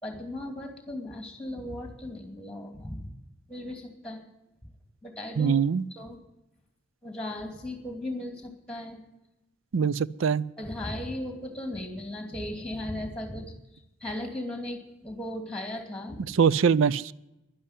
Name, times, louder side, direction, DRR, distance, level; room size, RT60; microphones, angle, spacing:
voice 1, 0.0-3.1 3.5-4.2 5.0-5.5 6.0-6.2 7.0-9.0 10.6-13.5 14.0-16.2, left 1 dB, 5° left, 5 dB, 2.5 m, -36 dB
voice 2, 5.4-5.8 9.7-10.4 16.3-17.1, right 6 dB, 60° right, 19 dB, 0.4 m, -23 dB
11.5 x 11.0 x 9.8 m, 0.91 s
head